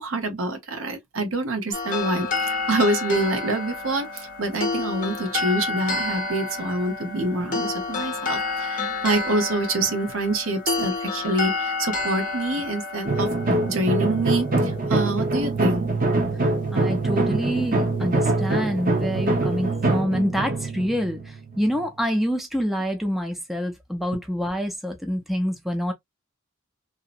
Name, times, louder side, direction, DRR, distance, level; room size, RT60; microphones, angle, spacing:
voice 1, 0.0-13.3 13.6-15.9, right 2 dB, 75° right, 0.8 m, -26 dB
sound 1, 1.7-14.9, left 3 dB, 40° left, 0.8 m, -29 dB
sound 2, 13.1-21.9, right 2 dB, 45° right, 0.8 m, -24 dB
voice 2, 16.7-25.9, equal, ahead, 0.4 m, -26 dB
2.7 x 2.0 x 2.4 m
head